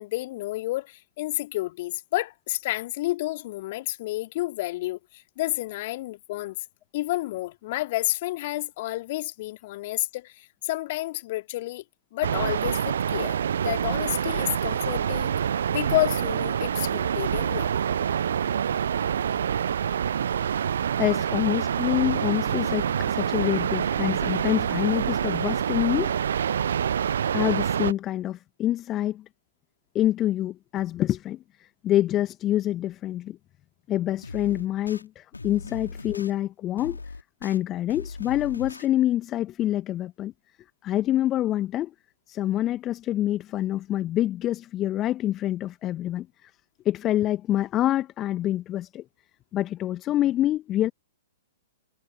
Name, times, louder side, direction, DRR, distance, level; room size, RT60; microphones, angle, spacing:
voice 1, 0.0-6.6 6.9-11.8 12.1-13.4 13.6-15.3 15.7-17.7, left 18 dB, 45° left, 2.4 m, -30 dB
sound 1, 12.2-27.9, right 8 dB, 60° right, 0.6 m, -26 dB
voice 2, 21.0-26.1 27.3-29.2 29.9-33.4 33.9-37.0 37.4-40.3 40.8-41.9 42.3-46.5 46.8-49.0 49.5-50.9, left 13 dB, 25° left, 1.5 m, -26 dB
sound 2, 34.2-35.0 35.3-36.3 36.8-37.6 37.9-38.9, left 3 dB, 75° left, 3.1 m, -39 dB
figure-of-eight pair, 110°, 0 cm